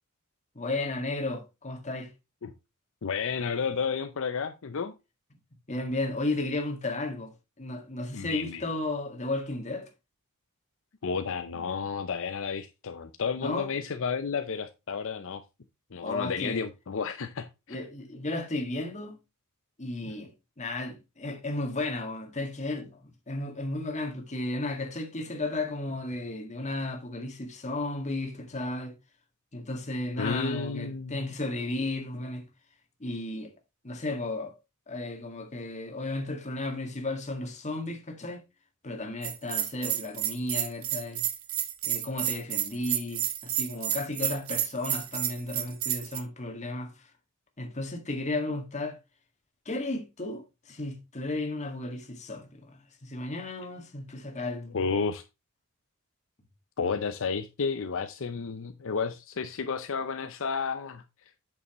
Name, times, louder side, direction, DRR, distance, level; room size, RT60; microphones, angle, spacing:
voice 1, 0.6-2.1 5.7-9.9 13.4-13.7 16.0-16.6 17.7-19.2 19.8-20.3 20.6-28.9 29.5-32.5 33.0-33.5 33.8-34.5 34.9-38.4 38.8-41.2 41.8-47.1 47.6-49.0 49.7-54.8, left 2 dB, 35° left, 1.9 m, -34 dB
voice 2, 3.0-4.9 8.1-8.6 11.0-15.4 15.9-17.8 20.0-20.1 30.2-31.3 54.7-55.2 56.8-61.0, left 5 dB, 65° left, 0.6 m, -32 dB
Bell, 39.2-46.2, right 11 dB, 75° right, 1.1 m, -30 dB
8.3 x 7.0 x 3.0 m
head